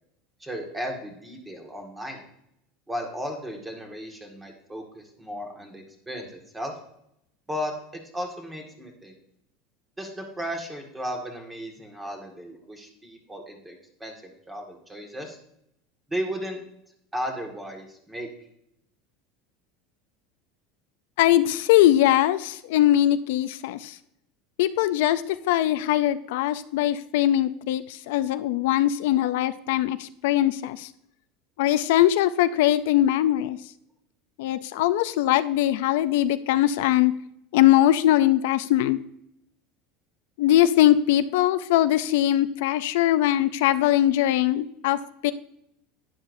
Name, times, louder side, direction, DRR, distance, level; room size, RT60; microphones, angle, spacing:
voice 1, 0.4-2.2 2.9-6.3 6.5-6.7 7.5-9.2 10.0-15.4 16.1-16.6 17.1-18.3, equal, 10° right, 2 dB, 1.8 m, -35 dB
voice 2, 21.2-24.0 24.6-30.9 31.6-33.6 34.4-37.1 37.5-39.0 40.4-45.3, left 13 dB, 80° left, 11 dB, 0.5 m, -21 dB
11.5 x 10.0 x 2.7 m, 0.76 s
supercardioid pair, 150°, 0 cm